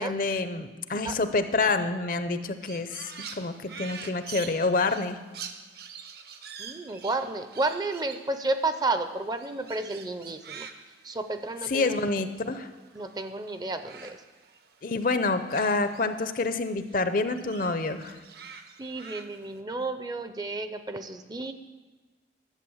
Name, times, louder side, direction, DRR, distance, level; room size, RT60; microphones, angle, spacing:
voice 1, 0.0-5.2 11.7-12.7 14.8-18.2, left 3 dB, 50° left, 10 dB, 0.6 m, -27 dB
Crow, 2.6-13.3 13.6-16.6 16.9-19.6, right 6 dB, 60° right, 0.8 m, -45 dB
voice 2, 6.6-10.7 11.0-12.1 12.9-14.2 18.8-21.5, right 2 dB, 20° right, 9 dB, 0.5 m, -31 dB
11.5 x 7.6 x 7.1 m, 1.2 s
head